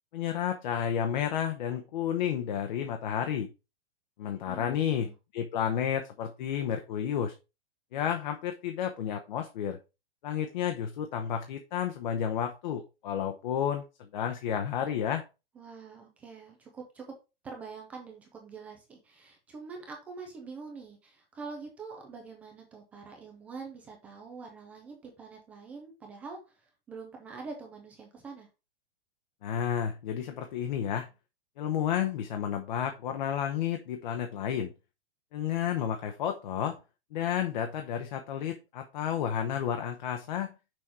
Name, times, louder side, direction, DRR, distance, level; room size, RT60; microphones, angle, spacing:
voice 1, 0.1-3.5 4.2-7.3 7.9-9.8 10.2-15.2 29.4-31.1 31.6-34.7 35.3-36.8 37.1-40.5, left 9 dB, 50° left, 0.9 m, -31 dB
voice 2, 4.4-5.1 15.6-17.2 17.4-28.5, right 4 dB, 5° right, 0.3 m, -45 dB
6.3 x 4.3 x 4.7 m
supercardioid pair, 170°, 29 cm